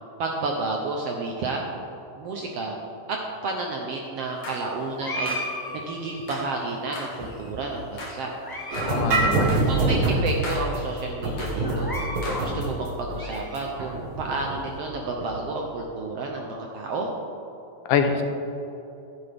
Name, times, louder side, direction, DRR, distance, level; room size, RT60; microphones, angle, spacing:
voice 1, 0.2-1.6 2.2-2.7 3.1-3.2 3.4-5.4 5.7-8.3 9.6-12.0 12.4-17.1, right 3 dB, 70° right, 0 dB, 1.5 m, -31 dB
sound 1, 4.2-4.7 5.3-5.8 6.1-6.6 6.9-8.3 8.5-9.0 9.5-9.9 10.3-10.8 11.3-11.8 12.2-12.7, left 1 dB, 55° left, 2.8 m, -39 dB
sound 2, 5.0-6.4 7.1-7.8 8.3-9.0 9.2-9.3 10.0-10.1 10.5-10.6 11.6-12.4 12.9-13.9, left 1 dB, 25° left, 0.5 m, -35 dB
sound 3, 8.7-15.5, right 2 dB, 50° right, 1.8 m, -26 dB
voice 2, 8.8-9.6 17.9-18.2, left 6 dB, 80° left, 5 dB, 2.3 m, -24 dB
12.5 x 10.0 x 3.5 m, 2.9 s
omnidirectional pair, 3.6 m